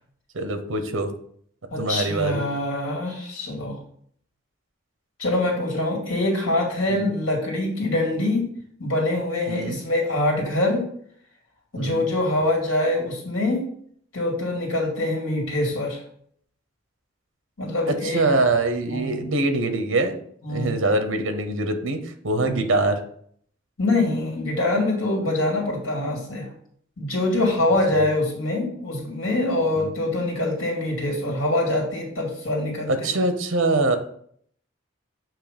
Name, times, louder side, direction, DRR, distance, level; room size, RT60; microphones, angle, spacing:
voice 1, 0.3-1.1 1.8-2.4 6.9-7.1 9.5-9.8 11.8-12.1 18.0-20.2 20.5-23.0 27.9-28.0 29.7-29.9 32.9-34.0, right 2 dB, 80° right, 8 dB, 0.8 m, -24 dB
voice 2, 1.7-3.8 5.2-8.4 8.8-10.9 11.7-13.6 14.1-16.0 17.6-18.2 18.9-19.3 20.4-20.8 22.4-22.6 23.8-26.5 27.0-33.1, left 2 dB, 90° left, 0 dB, 2.5 m, -24 dB
7.6 x 3.0 x 5.1 m, 0.63 s
head